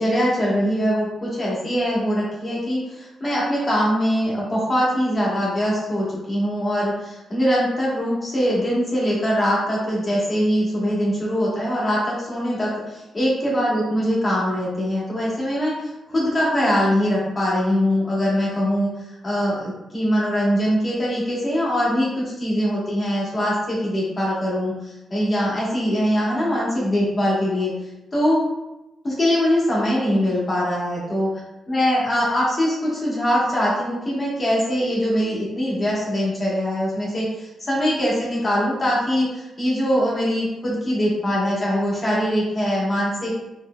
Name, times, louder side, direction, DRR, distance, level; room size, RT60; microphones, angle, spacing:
voice 1, 0.0-15.7 16.1-18.9 19.2-27.7 28.1-28.4 29.0-31.3 31.7-43.3, equal, 20° left, -6 dB, 1.3 m, -22 dB
4.2 x 3.3 x 2.3 m, 0.98 s
wide cardioid pair, 165°, 0 cm